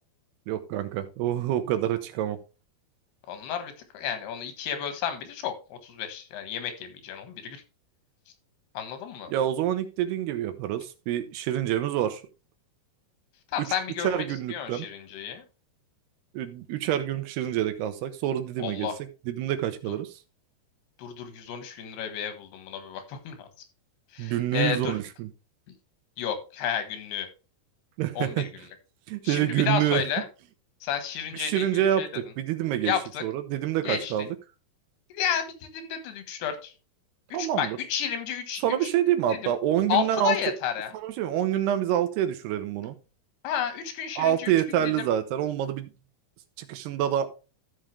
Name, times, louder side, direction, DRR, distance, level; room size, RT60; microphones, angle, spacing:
voice 1, 0.5-2.4 9.3-12.2 13.6-13.7 14.0-14.9 16.3-18.9 19.3-20.1 24.2-25.3 28.0-28.5 29.1-30.0 31.3-32.9 33.2-34.3 37.3-37.8 38.6-40.4 40.9-43.0 44.2-45.9 46.6-47.3, right 11 dB, 90° right, 3.1 m, -27 dB
voice 2, 3.3-7.6 8.7-9.3 13.5-14.2 14.5-15.4 18.6-19.0 19.9-20.0 21.0-23.5 24.1-24.9 26.2-27.3 28.2-28.5 29.2-30.2 30.8-32.1 32.8-33.2 33.8-34.1 35.1-36.7 37.3-38.9 39.3-39.5 39.9-40.9 43.4-45.1, left 9 dB, 90° left, 3.5 m, -32 dB
14.0 x 5.6 x 3.2 m
omnidirectional pair, 4.5 m